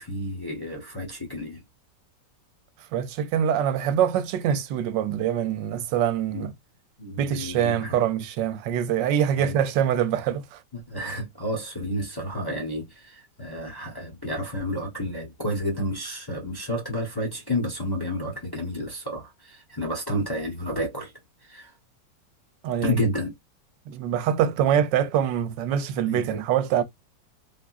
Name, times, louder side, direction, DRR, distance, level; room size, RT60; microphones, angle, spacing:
voice 1, 0.0-1.6 6.3-6.5 7.0-8.0 9.4-9.6 10.7-21.1 21.5-21.7 22.8-23.3 26.0-26.4, left 1 dB, 25° left, 0.5 m, -30 dB
voice 2, 2.9-6.5 7.2-10.6 22.6-23.0 23.9-26.8, right 9 dB, 75° right, 1.2 m, -24 dB
3.6 x 2.5 x 2.3 m
omnidirectional pair, 2.0 m